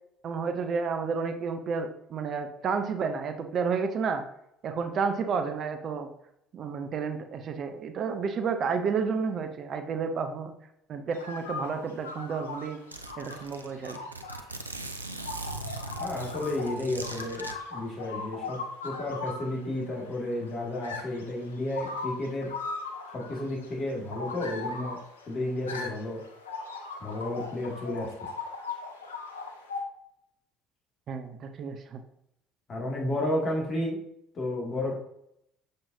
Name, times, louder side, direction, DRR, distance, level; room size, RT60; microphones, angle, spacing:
voice 1, 0.2-4.2 4.6-6.1 6.5-10.5 10.9-12.8 13.2-14.0 31.1-32.0, right 5 dB, 45° right, 7 dB, 0.6 m, -31 dB
sound 1, 11.1-29.8, left 4 dB, 80° left, 0.6 m, -39 dB
Zipper (clothing), 12.1-12.2 12.5-12.6 12.9-17.5, right 2 dB, 90° right, 0.4 m, -40 dB
voice 2, 16.0-22.6 23.1-25.0 25.3-26.2 27.0-28.2 32.7-34.0 34.3-34.9, left 1 dB, 40° left, -1 dB, 2.1 m, -32 dB
6.9 x 5.2 x 2.7 m, 0.77 s
figure-of-eight pair, 55°, 0 cm